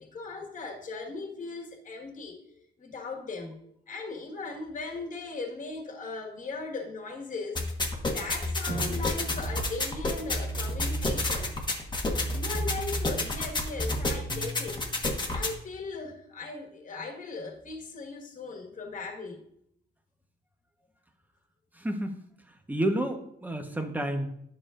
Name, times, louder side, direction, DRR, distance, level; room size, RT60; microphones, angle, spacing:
voice 1, 0.0-2.4 2.8-7.6 8.0-11.6 12.3-14.8 15.3-19.4, left 3 dB, 40° left, 1.7 m, -38 dB
sound 1, 7.5-15.5, left 1 dB, 20° left, 1.3 m, -30 dB
Drum, 8.7-11.2, right 3 dB, 85° right, 1.4 m, -41 dB
voice 2, 21.7-22.2 22.7-24.3, right 1 dB, 10° right, 1.1 m, -30 dB
9.7 x 6.5 x 2.5 m
cardioid pair, 90°, 20 cm